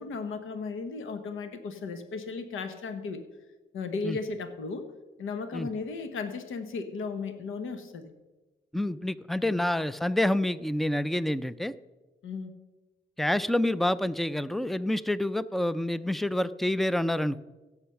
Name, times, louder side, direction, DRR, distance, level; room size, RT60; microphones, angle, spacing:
voice 1, 0.0-3.2 3.7-4.9 5.2-8.1 9.4-9.6 12.2-12.6, left 4 dB, 90° left, 9 dB, 1.2 m, -35 dB
voice 2, 8.7-11.7 13.2-17.4, left 1 dB, ahead, 16 dB, 0.4 m, -28 dB
16.5 x 7.1 x 5.8 m, 1.1 s
cardioid pair, 105°, 20 cm